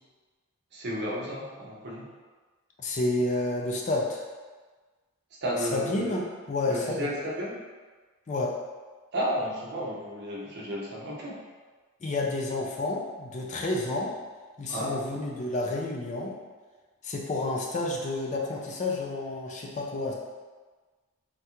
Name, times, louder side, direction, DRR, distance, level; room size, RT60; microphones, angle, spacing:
voice 1, 0.7-2.1 5.4-6.2 6.7-7.6 9.1-11.4 14.7-15.0, equal, 50° right, -3 dB, 0.6 m, -32 dB
voice 2, 2.8-4.2 5.7-6.2 6.5-7.1 8.3-8.5 12.0-14.1 14.6-16.3 17.0-20.1, left 2 dB, 35° left, -1 dB, 0.4 m, -30 dB
3.2 x 2.4 x 2.8 m, 1.4 s
head